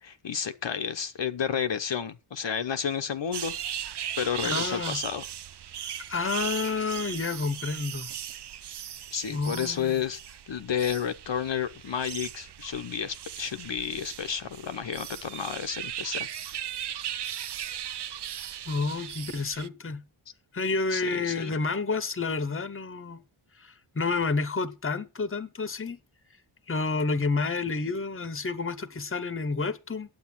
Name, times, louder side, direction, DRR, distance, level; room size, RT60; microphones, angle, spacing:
voice 1, 0.0-3.5 4.2-5.2 9.1-10.2 10.5-16.6 20.9-21.5, left 8 dB, 65° left, 0.8 m, -31 dB
sound 1, 3.3-19.7, right 10 dB, 60° right, 0.5 m, -38 dB
voice 2, 4.4-5.0 6.0-8.1 9.3-10.0 18.7-20.0 20.5-23.2 23.6-26.0 26.7-30.1, left 4 dB, 25° left, 0.9 m, -30 dB
9.3 x 8.0 x 5.9 m
wide cardioid pair, 95°, 48 cm